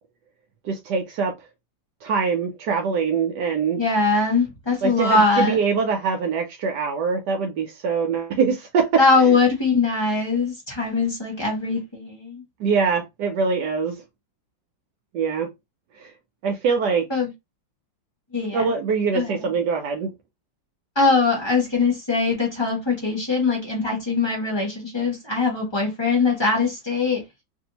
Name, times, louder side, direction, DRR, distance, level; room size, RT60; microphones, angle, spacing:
voice 1, 0.6-1.3 2.0-3.8 4.8-8.9 9.2-9.4 12.6-14.0 15.1-15.5 15.9-16.1 16.4-17.1 18.5-20.1, right 5 dB, 70° right, 1.1 m, -23 dB
voice 2, 3.8-5.6 9.0-12.4 17.1-17.3 18.3-18.7 19.1-19.4 20.9-27.2, left 4 dB, 20° left, 0.7 m, -21 dB
3.2 x 2.7 x 2.8 m
omnidirectional pair, 2.1 m